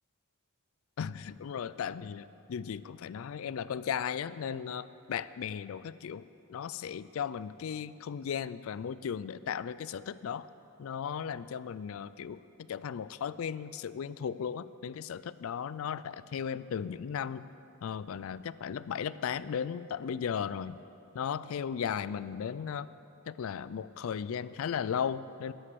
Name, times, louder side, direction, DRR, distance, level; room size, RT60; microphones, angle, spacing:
voice 1, 1.0-10.5 10.8-12.4 12.7-17.4 17.8-20.8 21.1-22.9 23.3-25.5, left 7 dB, 70° left, 16 dB, 0.3 m, -36 dB
11.0 x 9.8 x 6.9 m, 2.8 s
head